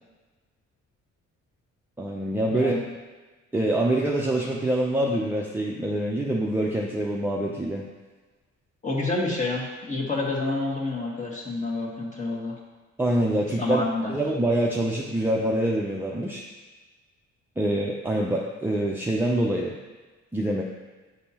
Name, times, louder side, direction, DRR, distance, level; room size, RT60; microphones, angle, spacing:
voice 1, 2.0-2.8 3.5-7.8 13.0-13.8 14.1-16.4 17.6-19.7 20.3-20.6, right 1 dB, 5° right, -3 dB, 0.6 m, -25 dB
voice 2, 2.5-2.8 8.8-12.6 13.6-14.1, left 2 dB, 25° left, -3 dB, 1.7 m, -28 dB
9.6 x 3.4 x 2.9 m, 1.3 s
cardioid pair, 90°, 30 cm